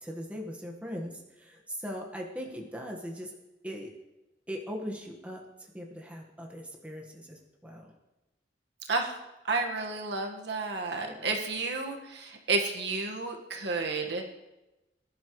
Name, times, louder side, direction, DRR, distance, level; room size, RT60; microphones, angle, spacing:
voice 1, 0.0-1.1 1.4-3.3 3.6-3.9 4.5-5.4 5.7-7.9 11.0-11.4, equal, 5° right, 0 dB, 1.4 m, -39 dB
voice 2, 9.5-14.2, right 3 dB, 65° right, 2 dB, 1.6 m, -31 dB
20.5 x 11.5 x 3.2 m, 1.0 s
head